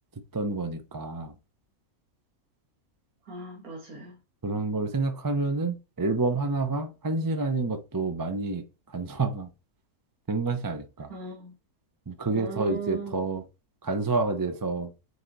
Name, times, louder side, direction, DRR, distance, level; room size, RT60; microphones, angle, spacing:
voice 1, 0.1-1.3 4.4-9.5 10.3-11.1 12.1-13.5 13.8-14.9, right 3 dB, 25° right, 0.5 m, -29 dB
voice 2, 3.3-4.2 11.1-11.6 12.3-13.2, right 4 dB, 90° right, 2.0 m, -37 dB
8.1 x 4.5 x 4.0 m
omnidirectional pair, 1.5 m